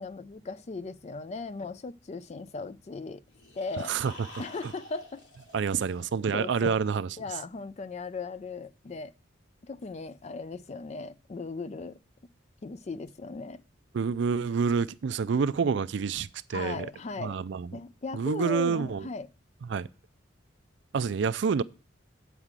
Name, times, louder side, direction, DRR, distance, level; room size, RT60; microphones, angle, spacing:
voice 1, 0.0-3.2 3.6-3.9 4.4-5.2 6.3-6.8 7.2-9.1 9.6-12.0 12.6-13.6 16.5-17.4 17.7-19.3, left 4 dB, 35° left, 0.4 m, -37 dB
sound 1, 3.3-6.4, left 1 dB, 70° left, 2.6 m, -49 dB
voice 2, 3.8-4.1 4.6-4.7 5.5-7.2 13.9-16.9 17.2-17.8 18.1-19.1 19.7-19.9 20.9-21.6, right 6 dB, 65° right, 0.4 m, -28 dB
8.1 x 4.9 x 7.3 m
head